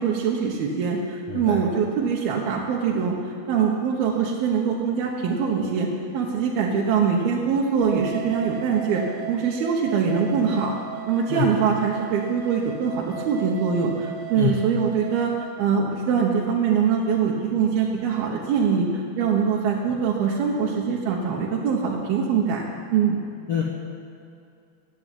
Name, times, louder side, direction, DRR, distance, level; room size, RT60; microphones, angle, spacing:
voice 1, 0.0-10.7 11.1-22.6 22.9-23.2, right 6 dB, 75° right, -3 dB, 3.0 m, -23 dB
voice 2, 1.3-1.7 11.3-11.5 14.3-14.6 23.5-23.6, left 8 dB, 60° left, -2 dB, 1.5 m, -26 dB
sound 1, 7.8-15.5, right 9 dB, 50° right, 1.2 m, -37 dB
15.5 x 9.9 x 9.2 m, 2.5 s
omnidirectional pair, 4.5 m